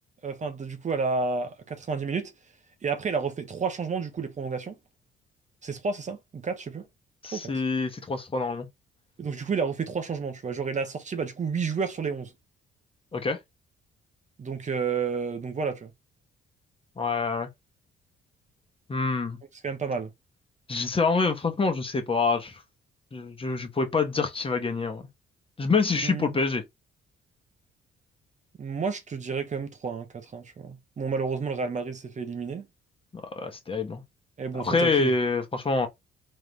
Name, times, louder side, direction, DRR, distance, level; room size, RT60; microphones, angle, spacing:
voice 1, 0.2-2.3 2.8-4.7 5.6-6.9 7.3-7.5 9.2-12.3 14.4-15.9 19.6-20.1 26.0-26.4 28.6-32.7 34.4-35.1, right 5 dB, 35° right, 0.9 m, -31 dB
voice 2, 7.2-8.7 13.1-13.4 17.0-17.5 18.9-19.4 20.7-22.6 23.1-25.1 25.6-26.6 33.1-34.0 34.5-35.9, left 4 dB, 25° left, 1.1 m, -26 dB
3.7 x 3.2 x 3.3 m
cardioid pair, 90°, 20 cm